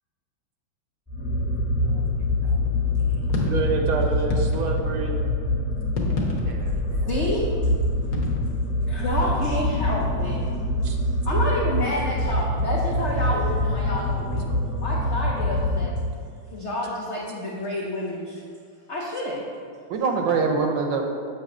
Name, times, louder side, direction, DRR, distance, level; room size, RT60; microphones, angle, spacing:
sound 1, 1.1-16.4, left 1 dB, 10° left, 1.0 m, -25 dB
voice 1, 1.8-3.5 6.4-7.1 19.9-21.0, right 4 dB, 70° right, 3 dB, 1.3 m, -28 dB
sound 2, 3.0-3.7 4.3-4.9 5.8-6.8 8.1-8.5, left 3 dB, 50° left, 1.1 m, -29 dB
voice 2, 3.5-5.2 10.8-11.0 20.2-20.5, right 4 dB, 90° right, 2 dB, 1.6 m, -28 dB
voice 3, 7.1-7.4 8.9-10.4 11.2-14.5 14.8-15.9 16.5-18.4 18.9-19.4, left 1 dB, 75° left, -4 dB, 0.6 m, -28 dB
7.3 x 2.9 x 6.0 m, 2.2 s
omnidirectional pair, 2.2 m